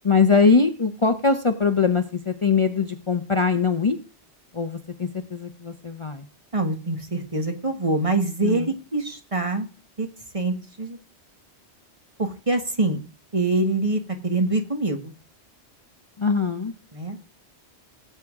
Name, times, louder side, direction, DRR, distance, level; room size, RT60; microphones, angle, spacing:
voice 1, 0.0-4.0 4.5-6.2 8.4-8.7 16.2-16.7, left 4 dB, 30° left, 7 dB, 0.7 m, -22 dB
voice 2, 6.5-9.7 10.0-10.1 10.3-11.0 12.2-13.0 13.3-15.1 16.9-17.2, right 2 dB, 30° right, 6 dB, 1.4 m, -25 dB
17.5 x 7.9 x 3.6 m, 0.35 s
omnidirectional pair, 1.1 m